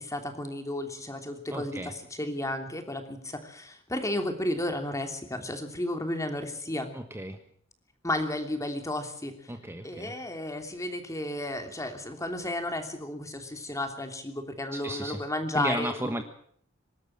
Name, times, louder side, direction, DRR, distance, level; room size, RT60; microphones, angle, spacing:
voice 1, 0.0-6.9 8.0-9.5 9.8-16.2, left 1 dB, 15° left, 6 dB, 3.1 m, -33 dB
voice 2, 1.5-1.9 6.9-7.4 9.5-10.2 14.7-15.2 15.5-16.2, right 1 dB, 15° right, 6 dB, 1.3 m, -34 dB
24.5 x 13.0 x 8.7 m, 0.62 s
head